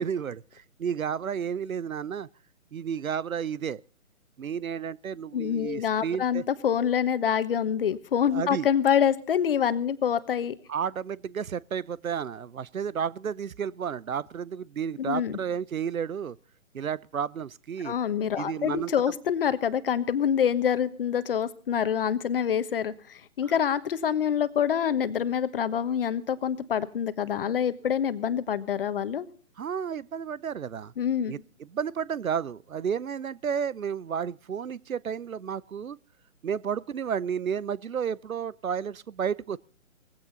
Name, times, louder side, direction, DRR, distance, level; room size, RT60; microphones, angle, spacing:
voice 1, 0.0-2.3 2.7-3.8 4.4-6.4 8.3-8.7 10.7-16.4 16.7-17.9 18.4-18.9 29.6-30.9 31.3-31.4 31.7-36.0 36.4-39.6, right 7 dB, 80° right, 0.7 m, -32 dB
voice 2, 5.3-10.5 15.0-15.4 17.8-29.3 31.0-31.3, left 8 dB, 40° left, 1.3 m, -26 dB
19.5 x 16.0 x 4.0 m
figure-of-eight pair, 140°, 41 cm